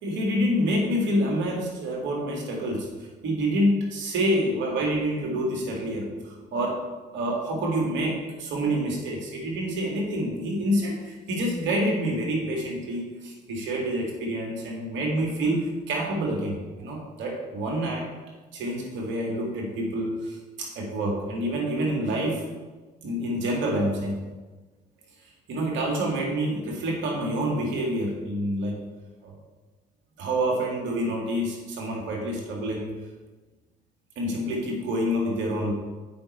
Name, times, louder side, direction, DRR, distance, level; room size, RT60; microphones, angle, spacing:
voice 1, 0.0-2.9 3.2-6.8 7.1-18.1 18.5-22.4 23.0-24.2 25.5-28.8 29.2-29.3 30.2-32.9 34.2-35.7, equal, 65° right, -1 dB, 2.2 m, -27 dB
8.5 x 5.4 x 4.4 m, 1.2 s
hypercardioid pair, 55°, 21 cm